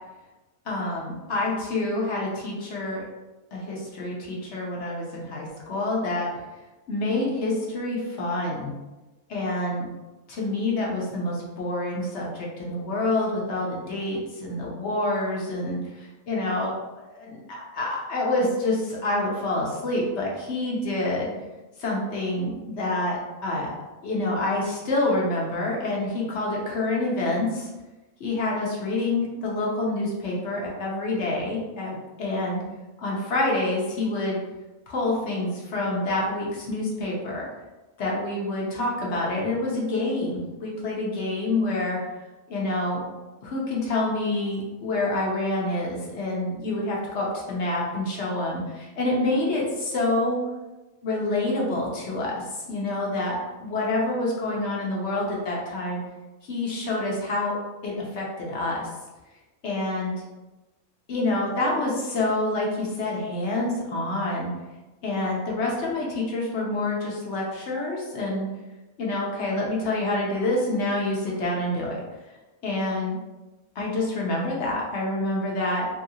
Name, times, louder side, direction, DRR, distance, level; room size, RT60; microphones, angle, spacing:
voice 1, 0.7-3.0 3.5-6.3 6.9-8.7 9.3-9.9 10.3-16.7 17.1-21.3 21.8-23.7 24.0-27.7 28.2-32.6 33.0-34.4 34.9-37.5 38.0-42.0 42.5-43.0 43.4-50.4 51.0-56.0 56.5-57.5 57.8-58.9 59.6-60.2 61.1-64.5 65.0-68.5 69.0-72.0 72.6-73.2 73.8-75.9, left 2 dB, 60° left, -3 dB, 1.0 m, -27 dB
2.7 x 2.7 x 2.7 m, 1.1 s
omnidirectional pair, 1.5 m